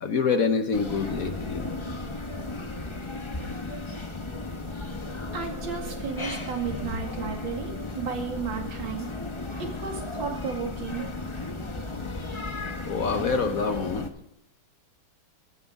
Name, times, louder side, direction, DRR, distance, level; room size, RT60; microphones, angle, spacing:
voice 1, 0.0-1.7 12.8-14.1, left 5 dB, 55° left, 7 dB, 1.3 m, -26 dB
sound 1, 0.7-14.1, left 2 dB, 20° left, 0.8 m, -35 dB
voice 2, 5.3-9.1 9.6-11.1 13.1-13.2, right 6 dB, 80° right, 2 dB, 3.0 m, -33 dB
15.5 x 13.0 x 3.6 m, 0.80 s
omnidirectional pair, 2.1 m